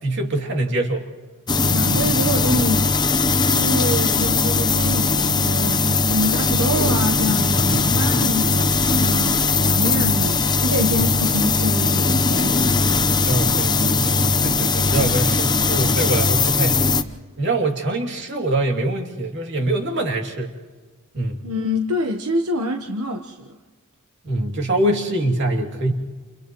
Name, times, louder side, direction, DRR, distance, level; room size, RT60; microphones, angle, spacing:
voice 1, 0.0-1.1 7.7-8.1 13.2-16.9 17.4-20.5 21.1-21.4 24.2-25.9, right 1 dB, 55° right, 2.7 m, -24 dB
sound 1, 1.5-17.0, left 4 dB, 20° left, 0.7 m, -19 dB
voice 2, 1.6-2.9 3.3-13.1 21.4-23.6, equal, 85° right, 1.1 m, -26 dB
29.5 x 29.0 x 3.1 m
head